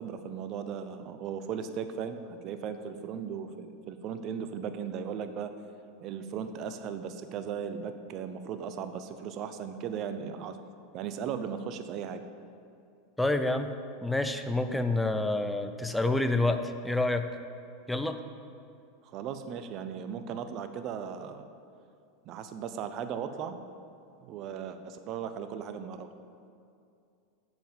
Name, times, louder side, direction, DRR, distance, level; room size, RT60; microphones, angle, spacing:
voice 1, 0.0-5.5 6.0-10.6 10.9-12.2 19.1-21.5 22.2-23.6 24.2-26.1, right 7 dB, 45° right, 9 dB, 0.8 m, -37 dB
voice 2, 13.2-13.7 14.0-17.3 17.9-18.2, left 2 dB, 5° left, 8 dB, 0.7 m, -28 dB
7.8 x 7.1 x 7.4 m, 2.5 s
hypercardioid pair, 95°, 0 cm